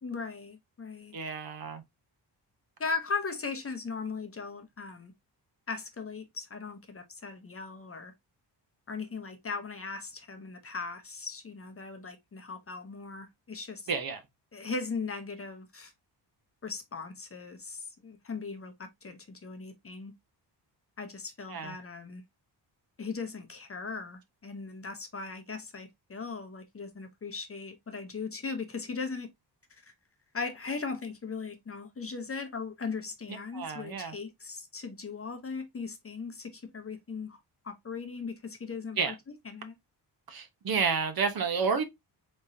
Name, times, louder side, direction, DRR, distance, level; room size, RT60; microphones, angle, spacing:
voice 1, 0.0-1.2 2.8-5.1 5.7-8.1 8.9-13.9 14.5-15.9 16.6-20.1 21.0-22.2 23.0-29.3 29.7-29.9 30.3-37.4 37.6-39.1 39.4-39.7, left 4 dB, 30° left, 0.8 m, -38 dB
voice 2, 1.1-1.8 13.9-14.2 21.5-21.8 33.5-34.1 39.0-39.1 40.3-41.8, right 5 dB, 50° right, 0.8 m, -30 dB
3.6 x 3.1 x 2.6 m
cardioid pair, 85°, 45 cm